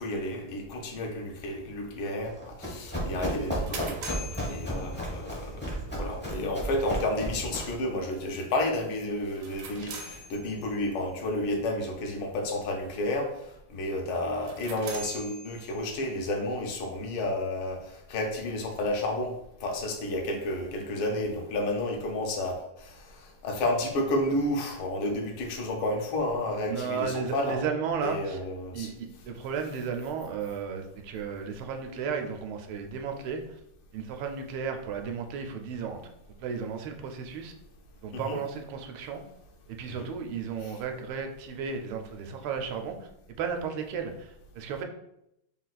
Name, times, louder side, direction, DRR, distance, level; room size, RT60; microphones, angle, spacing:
voice 1, 0.0-4.2 4.5-19.3 19.6-27.6 28.0-28.9 38.1-38.4 39.9-40.1 40.6-40.8, left 1 dB, 80° left, 2 dB, 1.6 m, -31 dB
Run, 2.2-7.8, right 1 dB, 15° left, 0.3 m, -34 dB
sound 1, 3.2-5.5 9.2-10.9 14.3-16.1, right 2 dB, 65° right, 1.1 m, -43 dB
voice 2, 26.7-28.4 28.7-33.4 33.9-36.0 36.4-37.5 38.0-39.2 39.8-43.0 43.4-44.8, right 6 dB, 85° right, 5 dB, 1.5 m, -34 dB
4.0 x 2.4 x 3.9 m, 0.80 s
omnidirectional pair, 2.3 m